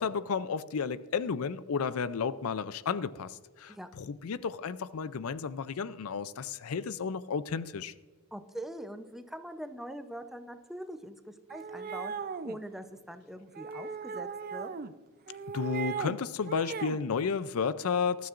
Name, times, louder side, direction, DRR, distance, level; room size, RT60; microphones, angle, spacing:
voice 1, 0.0-7.9 15.5-18.3, left 5 dB, 70° left, 15 dB, 0.5 m, -32 dB
voice 2, 8.3-14.7, right 1 dB, ahead, 8 dB, 0.7 m, -43 dB
sound 1, 11.5-12.6 13.6-14.9 15.3-16.2 16.5-17.0, right 5 dB, 40° right, 0.5 m, -37 dB
20.0 x 12.5 x 2.5 m, 1.4 s
head